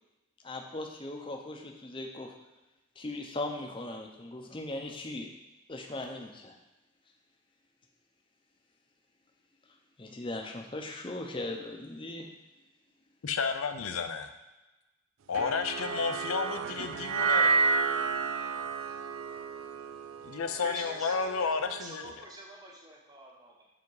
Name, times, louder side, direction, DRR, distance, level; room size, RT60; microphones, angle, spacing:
voice 1, 0.4-2.3 3.0-5.3 5.7-6.6 10.0-12.3, left 2 dB, 25° left, 3 dB, 0.7 m, -38 dB
voice 2, 13.2-14.3 15.3-17.6 20.2-22.1, left 5 dB, 85° left, 8 dB, 0.6 m, -32 dB
sound 1, 15.3-21.7, right 5 dB, 70° right, 0.4 m, -31 dB
voice 3, 20.6-23.7, right 1 dB, 20° right, -2 dB, 1.0 m, -45 dB
7.1 x 3.6 x 4.8 m, 1.1 s
head